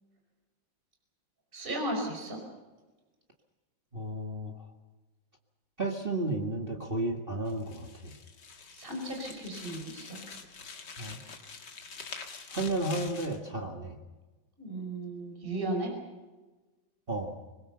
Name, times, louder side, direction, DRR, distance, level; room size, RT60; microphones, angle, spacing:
voice 1, 1.5-2.4 8.7-10.2 14.6-15.9, right 1 dB, 15° right, 1 dB, 5.1 m, -35 dB
voice 2, 3.9-4.6 5.8-8.1 11.0-11.2 12.5-14.0 17.1-17.4, right 2 dB, 30° right, 1 dB, 0.9 m, -33 dB
sound 1, 7.5-13.4, left 5 dB, 40° left, 1.8 m, -46 dB
25.0 x 21.0 x 6.8 m, 1.2 s
omnidirectional pair, 4.1 m